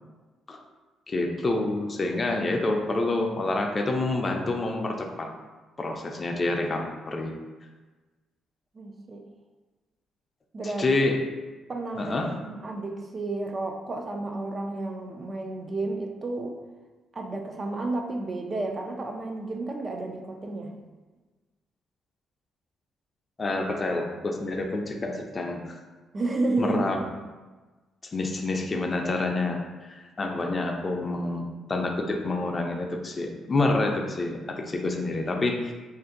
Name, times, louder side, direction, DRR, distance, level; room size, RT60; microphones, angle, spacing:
voice 1, 1.1-5.3 5.8-7.3 10.6-11.2 12.0-12.4 23.4-25.8 26.6-27.0 28.1-35.7, left 2 dB, 30° left, 2 dB, 0.4 m, -28 dB
voice 2, 8.7-9.3 10.5-10.9 11.7-16.6 17.1-20.8 26.1-26.8, right 2 dB, 35° right, 3 dB, 0.4 m, -31 dB
2.6 x 2.5 x 3.7 m, 1.3 s
cardioid pair, 90°, 0 cm